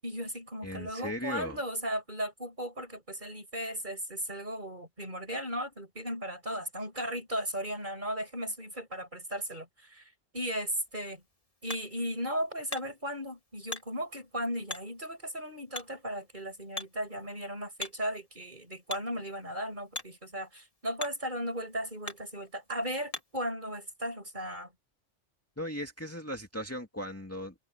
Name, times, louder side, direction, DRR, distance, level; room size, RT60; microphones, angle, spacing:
voice 1, 0.0-11.2 11.6-24.7, equal, 40° right, 7.9 m, -36 dB
voice 2, 0.6-1.6 25.6-27.5, equal, 10° left, 2.3 m, -37 dB
Hammer, 10.8-23.5, left 2 dB, 30° left, 2.7 m, -46 dB
omnidirectional pair, 1.2 m